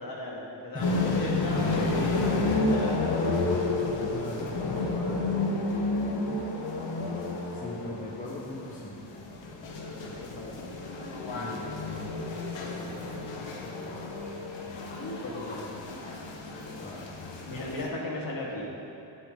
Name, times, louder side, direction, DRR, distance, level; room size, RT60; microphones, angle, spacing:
voice 1, 0.0-3.3 9.8-10.7 12.5-14.0 15.0-15.8 17.4-18.7, left 2 dB, 45° left, -4 dB, 2.3 m, -37 dB
voice 2, 0.7-1.4 4.1-5.3 7.5-9.0 11.3-12.0 16.8-17.1, left 1 dB, 15° left, -4 dB, 1.1 m, -41 dB
sound 1, 0.8-17.9, left 2 dB, 70° left, 1.4 m, -31 dB
12.0 x 9.1 x 3.9 m, 3.0 s
cardioid pair, 135°, 46 cm